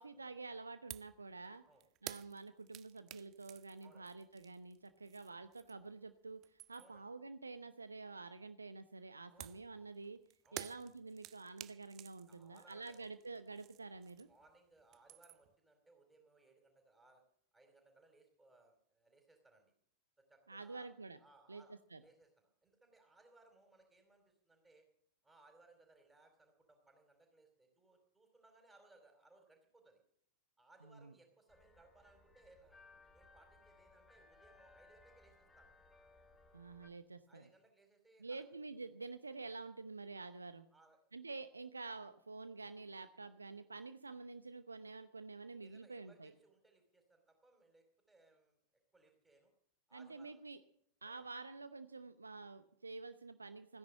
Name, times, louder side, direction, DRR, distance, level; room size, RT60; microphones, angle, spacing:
voice 1, 0.0-1.6 2.0-10.2 10.5-14.3 20.5-21.2 21.5-21.6 21.9-22.0 30.8-31.1 36.5-37.4 38.2-40.7 41.1-46.3 49.9-50.6 51.0-53.8, right 3 dB, 80° right, 12 dB, 0.7 m, -49 dB
sound 1, 0.9-1.2 1.5-5.9 6.3-7.0 9.4-14.5 14.8-15.5, right 15 dB, 35° right, 0.6 m, -53 dB
voice 2, 6.7-7.0 9.3-9.6 10.4-10.7 12.3-13.0 14.3-17.2 17.5-19.7 20.2-20.9 21.2-21.7 22.0-24.8 25.2-30.0 30.6-32.8 33.1-35.7 37.3-38.4 40.7-41.0 45.6-48.6 48.9-49.5 49.9-50.4 51.0-51.3, right 2 dB, 5° right, 1 dB, 4.2 m, -67 dB
sound 2, 31.5-36.9, left 3 dB, 10° left, 2.7 m, -64 dB
16.5 x 10.5 x 7.5 m, 0.67 s
figure-of-eight pair, 90°, 0 cm